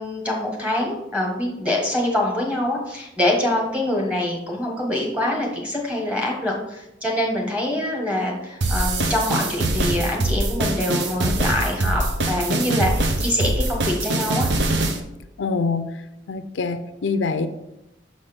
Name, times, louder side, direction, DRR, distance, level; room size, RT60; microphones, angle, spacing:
voice 1, 0.0-14.5, left 1 dB, 10° right, -3 dB, 1.4 m, -25 dB
sound 1, 8.6-15.0, right 2 dB, 65° right, 0.8 m, -23 dB
voice 2, 15.4-17.5, left 4 dB, 80° left, 10 dB, 0.5 m, -25 dB
6.3 x 4.1 x 5.1 m, 0.90 s
head